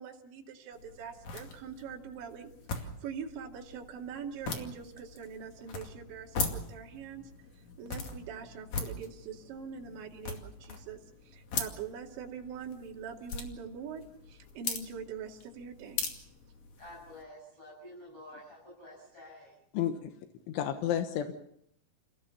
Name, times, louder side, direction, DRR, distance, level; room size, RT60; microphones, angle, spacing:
voice 1, 0.0-7.3 7.8-11.0 11.2-16.0, right 7 dB, 70° right, 0 dB, 4.7 m, -43 dB
sound 1, 0.7-17.2, left 4 dB, 45° left, 3.0 m, -41 dB
voice 2, 16.8-19.6, left 1 dB, 30° left, -6 dB, 8.2 m, -50 dB
voice 3, 20.5-21.3, left 10 dB, 80° left, 6 dB, 3.6 m, -30 dB
29.5 x 16.0 x 7.1 m, 0.72 s
omnidirectional pair, 5.5 m